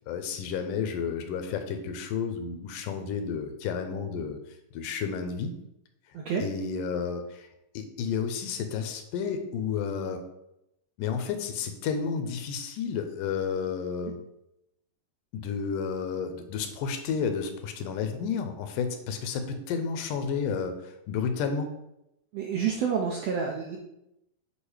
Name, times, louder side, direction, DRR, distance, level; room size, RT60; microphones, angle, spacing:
voice 1, 0.1-4.4 4.7-5.5 6.4-7.5 7.7-10.2 11.0-14.2 15.3-21.7, left 6 dB, 85° left, 7 dB, 2.2 m, -31 dB
voice 2, 22.3-23.8, right 6 dB, 80° right, -1 dB, 1.5 m, -29 dB
8.2 x 2.8 x 4.8 m, 0.83 s
omnidirectional pair, 3.8 m